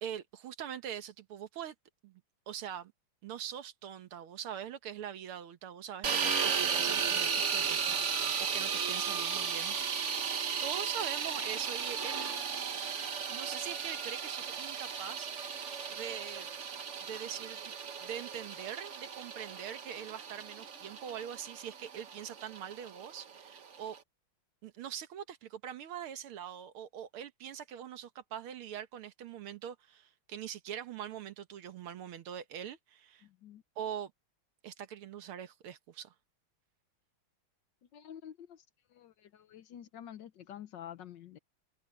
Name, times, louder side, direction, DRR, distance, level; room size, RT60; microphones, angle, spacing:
voice 1, 0.0-1.8 2.0-2.2 2.5-2.9 3.2-9.8 10.6-12.4 13.3-15.3 15.9-16.5 17.0-17.8 18.0-24.0 24.6-33.3 33.8-34.1 34.6-36.1, right 9 dB, 85° right, 2.0 m, -43 dB
sound 1, 6.0-24.0, right 6 dB, 45° right, 1.2 m, -35 dB
voice 2, 33.2-33.6 37.9-38.6 38.9-41.4, left 10 dB, 65° left, 1.4 m, -49 dB
omnidirectional pair, 2.3 m